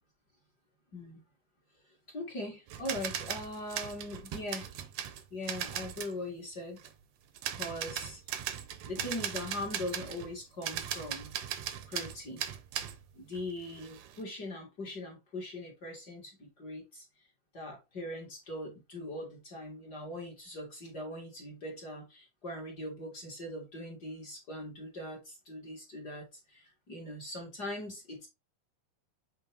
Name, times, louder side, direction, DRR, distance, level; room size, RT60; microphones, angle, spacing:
voice 1, 0.9-1.2 1.8-4.7 5.3-6.8 7.5-8.2 8.8-11.3 11.8-12.4 13.1-17.3 17.5-28.3, left 1 dB, 45° left, 1.4 m, -41 dB
sound 1, 2.7-6.1 6.8-6.9 7.3-10.4 10.6-13.0 13.3-14.2, right 10 dB, 80° right, 1.5 m, -38 dB
7.6 x 3.8 x 3.3 m
omnidirectional pair, 4.0 m